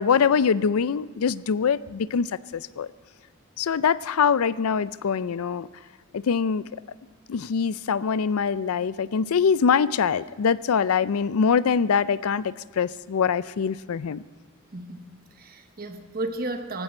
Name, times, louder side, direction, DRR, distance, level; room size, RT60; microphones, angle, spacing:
voice 1, 0.0-2.9 3.6-5.7 6.1-6.6 7.3-14.2, left 6 dB, 85° left, 18 dB, 0.4 m, -23 dB
voice 2, 14.7-16.8, right 2 dB, 45° right, 7 dB, 1.1 m, -34 dB
18.0 x 15.5 x 4.4 m, 1.4 s
head